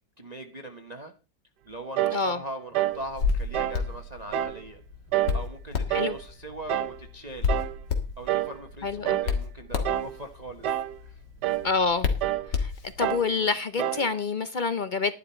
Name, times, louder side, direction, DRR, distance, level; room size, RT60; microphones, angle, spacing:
voice 1, 0.2-1.1 1.6-4.8 5.3-7.5 8.2-11.2 13.3-13.5, right 1 dB, 30° right, 0.9 m, -41 dB
sound 1, 2.0-2.2 2.7-3.0 3.5-3.8 4.3-4.6 5.1-5.4 5.9-6.2 6.7-7.0 7.5-7.8 8.3-8.6 9.0-9.3 9.8-10.2 10.6-11.0 11.4-11.7 12.2-12.5 13.0-13.3 13.8-14.1, right 12 dB, 75° right, 1.3 m, -27 dB
Hands, 2.9-13.2, left 5 dB, 90° left, 2.4 m, -32 dB
voice 2, 8.8-9.2 11.6-12.1 12.5-12.7 13.0-15.1, left 4 dB, 60° left, 0.4 m, -27 dB
12.0 x 11.0 x 4.3 m
omnidirectional pair, 1.8 m